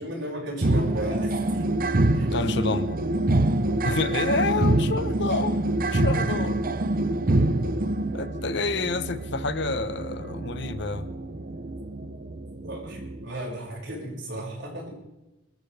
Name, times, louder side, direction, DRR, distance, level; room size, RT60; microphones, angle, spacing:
voice 1, 0.0-1.8 2.1-2.4 5.3-5.4 12.6-15.0, right 1 dB, 65° right, -2 dB, 6.3 m, -35 dB
sound 1, 0.6-13.3, right 2 dB, 45° right, 0.8 m, -26 dB
voice 2, 2.3-3.0 3.8-5.6 5.9-6.6 8.1-11.1, left 3 dB, 60° left, 12 dB, 1.0 m, -28 dB
23.5 x 13.5 x 3.5 m, 1.0 s
head